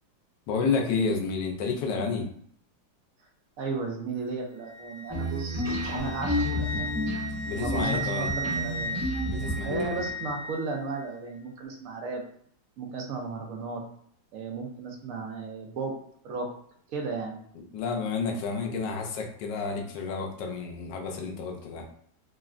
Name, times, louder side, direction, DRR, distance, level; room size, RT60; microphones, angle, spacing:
voice 1, 0.5-2.3 7.5-8.3 9.3-10.0 17.6-21.9, left 4 dB, 75° left, 2 dB, 1.1 m, -30 dB
voice 2, 3.6-5.6 5.9-7.0 7.5-9.0 9.6-12.2 12.8-13.8 14.3-15.9 16.2-16.5 16.9-17.4, right 4 dB, 70° right, 1 dB, 0.8 m, -34 dB
Wind instrument woodwind instrument, 4.7-10.6, right 2 dB, 30° left, 1.0 m, -36 dB
sound 1, 5.1-10.3, left 1 dB, 25° right, 0.4 m, -31 dB
3.6 x 2.1 x 2.4 m, 0.63 s
omnidirectional pair, 2.0 m